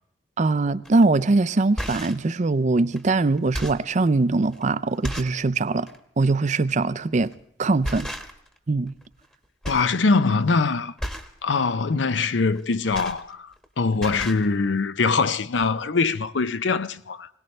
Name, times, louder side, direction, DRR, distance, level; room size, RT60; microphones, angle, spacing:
voice 1, 0.4-5.9 6.2-7.3 7.6-8.1 8.7-8.9, right 3 dB, 40° right, 0.5 m, -22 dB
sound 1, 0.8-1.0 1.6-2.3 2.9-3.0 3.4-3.9 4.5-4.6 5.0-5.4 5.8-6.0 7.2-7.4 7.8-8.6 8.9-9.3 9.6-10.0 10.3-10.5 11.0-11.4 12.5-13.7 13.9-14.5 15.2-15.3 15.5-15.7, equal, 5° left, 1.2 m, -34 dB
voice 2, 9.7-10.9 11.4-17.3, left 4 dB, 75° left, 0.6 m, -23 dB
21.5 x 18.5 x 3.3 m
head